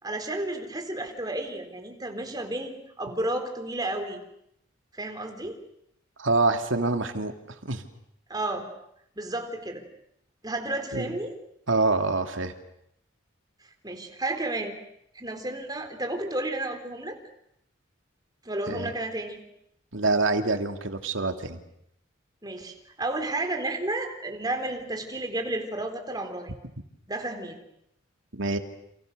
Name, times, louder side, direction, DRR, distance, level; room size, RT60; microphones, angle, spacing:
voice 1, 0.0-4.2 4.9-5.6 8.3-8.7 9.2-9.8 10.4-11.3 13.8-14.8 15.1-17.2 18.4-19.4 22.4-26.5 27.1-27.6, right 2 dB, 20° right, 5 dB, 3.9 m, -32 dB
voice 2, 6.2-7.3 7.6-7.8 10.9-11.1 11.7-12.5 18.7-18.9 19.9-21.6 28.3-28.6, right 3 dB, 75° right, 6 dB, 2.7 m, -25 dB
29.5 x 28.0 x 6.8 m, 0.75 s
head